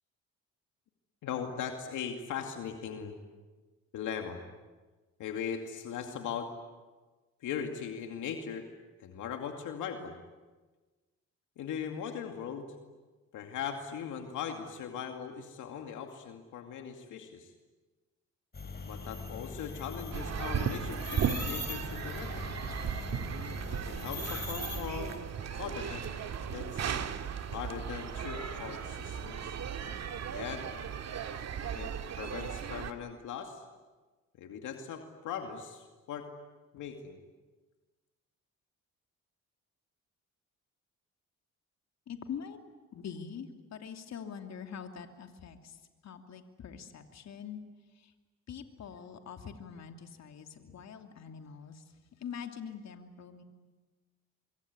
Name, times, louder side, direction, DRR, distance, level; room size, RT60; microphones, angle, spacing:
voice 1, 1.2-3.2 3.9-4.4 5.2-6.5 7.4-8.7 9.0-10.2 11.6-12.7 13.3-17.5 18.8-22.6 23.9-25.1 25.5-26.2 26.5-27.0 27.5-29.6 30.2-30.6 31.8-33.6 34.4-36.3 36.7-37.2, left 7 dB, 80° left, 4 dB, 2.4 m, -39 dB
sound 1, 18.5-25.2, left 3 dB, 35° left, 5.3 m, -41 dB
sound 2, 20.1-32.9, right 7 dB, 60° right, 2.0 m, -36 dB
voice 2, 42.1-42.6 42.9-47.6 47.9-48.1 48.5-51.8 52.2-53.4, left 7 dB, 60° left, 5 dB, 2.9 m, -44 dB
25.0 x 23.5 x 9.6 m, 1.3 s
cardioid pair, 90°, 30 cm